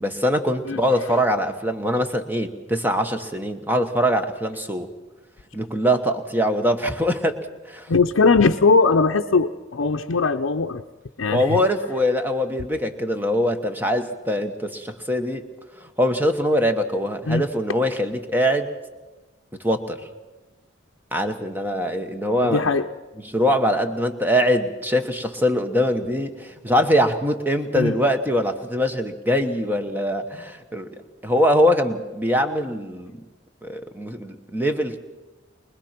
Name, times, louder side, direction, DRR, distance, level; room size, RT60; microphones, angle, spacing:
voice 1, 0.0-4.9 5.5-7.9 11.3-15.5 15.8-18.7 19.6-20.0 21.1-22.7 23.2-33.2 33.6-35.0, equal, 10° right, 6 dB, 1.2 m, -23 dB
voice 2, 7.9-10.8 11.2-11.6 17.3-17.4 22.4-22.9 27.7-27.9, left 4 dB, 90° left, 2 dB, 0.7 m, -20 dB
24.0 x 21.0 x 6.0 m, 1.2 s
head